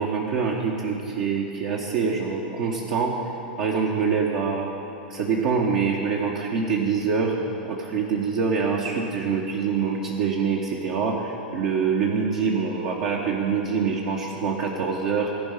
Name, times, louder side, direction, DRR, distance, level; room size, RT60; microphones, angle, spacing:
voice 1, 0.0-4.7 5.1-7.4 7.6-15.3, right 5 dB, 50° right, -2 dB, 1.2 m, -25 dB
15.5 x 5.5 x 8.9 m, 2.9 s
figure-of-eight pair, 90°, 5 cm